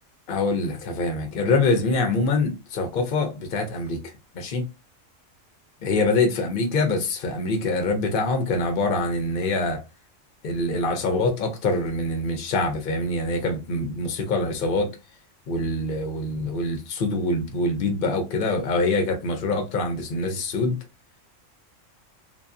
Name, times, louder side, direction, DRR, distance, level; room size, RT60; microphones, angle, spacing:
voice 1, 0.3-4.0 4.3-4.7 5.8-9.8 10.4-14.9 15.5-20.8, left 2 dB, 55° left, 0.7 m, -24 dB
2.6 x 2.3 x 2.5 m
omnidirectional pair, 1.3 m